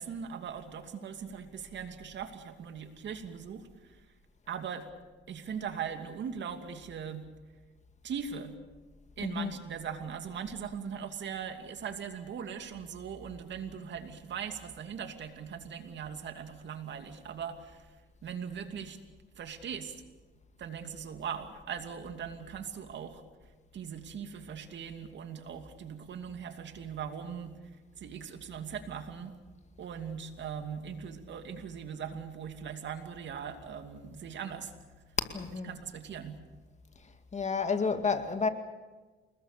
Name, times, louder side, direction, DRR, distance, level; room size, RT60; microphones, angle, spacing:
voice 1, 0.0-4.0 4.5-4.9 5.3-7.2 8.0-8.6 9.2-17.9 18.2-19.0 19.3-19.9 20.6-23.2 23.7-27.6 28.0-29.3 29.8-34.7 35.5-36.4, right 7 dB, 65° right, 2.7 m, -40 dB
voice 2, 9.2-9.5 35.3-35.7 37.0-38.5, left 5 dB, 35° left, 2.3 m, -31 dB
29.0 x 20.5 x 6.9 m
cardioid pair, 90°, 20 cm